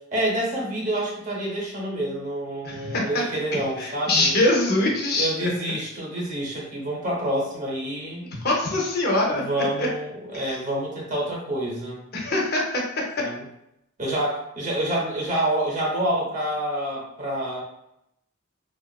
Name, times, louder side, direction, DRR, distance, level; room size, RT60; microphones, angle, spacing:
voice 1, 0.1-4.3 5.2-8.3 9.3-12.0 13.2-13.4 14.0-17.6, right 1 dB, 35° right, -3 dB, 0.7 m, -27 dB
voice 2, 2.6-3.0 3.8-5.5 8.4-9.4 9.8-9.9 10.3-10.6 12.1-12.8, left 2 dB, 50° left, -1 dB, 0.5 m, -23 dB
2.6 x 2.4 x 2.2 m, 0.81 s
head